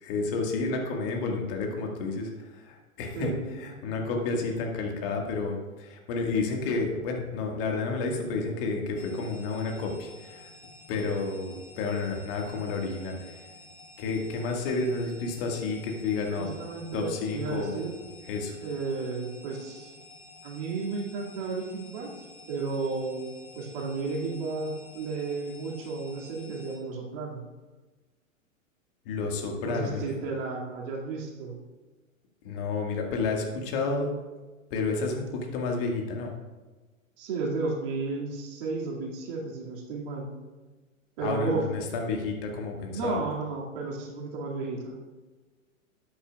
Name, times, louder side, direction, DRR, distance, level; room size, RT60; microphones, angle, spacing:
voice 1, 0.0-10.5 10.9-13.4 14.0-16.5 16.9-17.8 18.3-18.6 29.1-30.0 32.4-34.1 34.7-36.3 41.2-43.2, left 3 dB, 40° left, 1 dB, 1.9 m, -30 dB
voice 2, 3.1-3.5 16.4-17.9 18.6-19.9 20.4-22.1 22.5-27.4 29.6-31.6 37.2-40.3 41.2-41.6 42.9-45.0, right 4 dB, 45° right, -1 dB, 2.3 m, -33 dB
sound 1, 9.0-26.8, left 3 dB, 60° left, 2.1 m, -51 dB
12.5 x 8.9 x 2.4 m, 1.2 s
figure-of-eight pair, 105°, 41 cm